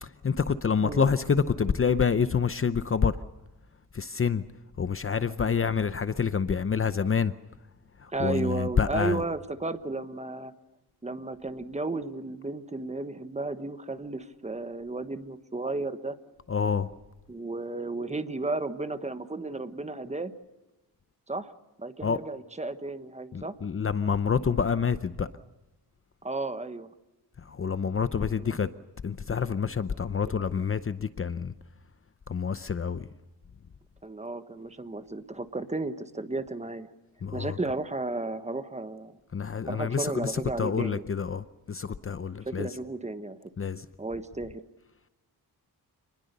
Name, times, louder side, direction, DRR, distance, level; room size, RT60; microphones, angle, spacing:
voice 1, 0.0-3.2 3.9-4.4 4.8-7.3 8.0-9.2 16.5-16.9 22.0-22.2 23.3-25.3 27.4-28.7 29.0-31.5 32.3-33.1 37.2-37.6 39.3-42.7 43.6-43.9, left 6 dB, 35° left, 0.7 m, -27 dB
voice 2, 8.1-10.5 11.0-16.2 17.3-20.3 21.3-21.5 21.8-23.5 26.2-26.9 28.3-28.6 34.0-36.9 37.3-39.1 39.6-41.0 42.4-43.5 44.0-44.6, right 2 dB, 15° right, 1.3 m, -33 dB
28.0 x 20.5 x 6.8 m
wide cardioid pair, 150°, 39 cm